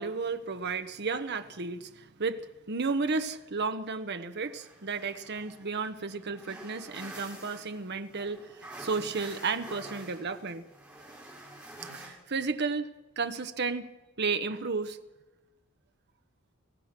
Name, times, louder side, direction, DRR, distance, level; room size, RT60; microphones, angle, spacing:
voice 1, 0.0-10.7 11.9-12.9 13.2-13.9 14.2-15.0, right 4 dB, 50° right, 9 dB, 1.0 m, -33 dB
sound 1, 4.4-12.1, right 1 dB, 5° right, 5.6 m, -48 dB
26.5 x 16.5 x 6.0 m, 1.1 s
head